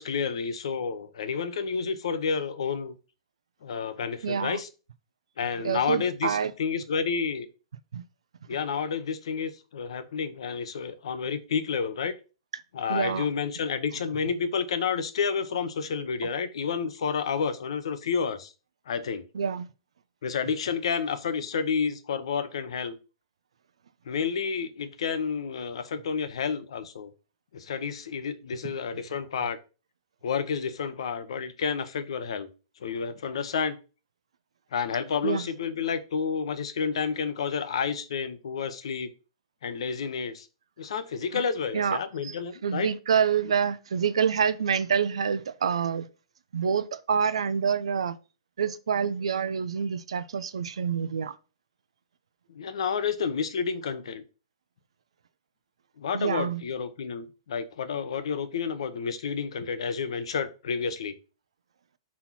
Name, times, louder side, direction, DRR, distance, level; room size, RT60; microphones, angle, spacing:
voice 1, 0.0-2.9 3.6-4.7 5.4-7.5 8.5-12.2 12.7-18.5 18.9-19.2 20.2-23.0 24.1-27.1 27.5-29.6 30.2-32.5 32.8-33.8 34.7-39.1 39.6-40.5 40.8-42.9 52.5-54.2 56.0-61.1, left 6 dB, 75° left, 0.9 m, -30 dB
voice 2, 4.2-4.6 5.6-6.5 7.9-8.0 12.9-13.3 19.3-19.7 35.2-35.4 41.7-42.3 42.6-46.1 46.5-48.2 48.6-51.3 56.1-56.6, right 7 dB, 85° right, 0.6 m, -27 dB
4.3 x 4.2 x 5.6 m
hypercardioid pair, 130°, 3 cm